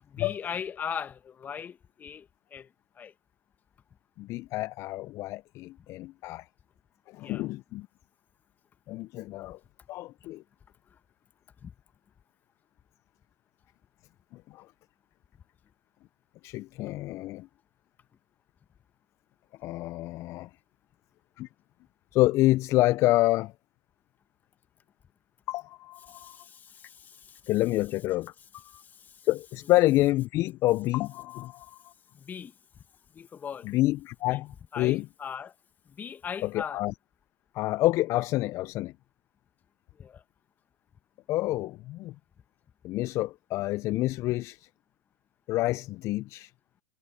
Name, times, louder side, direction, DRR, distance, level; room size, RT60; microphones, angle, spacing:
voice 1, 0.1-2.3 2.5-2.7 3.0-3.1 7.2-7.4 11.6-11.7 26.1-27.4 32.1-32.5 33.1-33.7 34.3-34.4 34.7-35.5 35.9-36.8 40.0-40.2, left 7 dB, 20° left, 2.0 m, -39 dB
voice 2, 4.2-6.4 7.1-7.9 8.9-9.6 9.9-10.4 14.5-14.7 16.4-17.5 19.6-20.5 21.4-21.5 22.1-23.5 25.5-26.4 27.5-28.8 29.2-31.8 33.6-35.0 36.4-36.9 37.5-38.9 41.3-42.1 42.8-44.7 45.5-46.5, left 17 dB, 40° left, 0.8 m, -28 dB
hypercardioid pair, 100°, 8 cm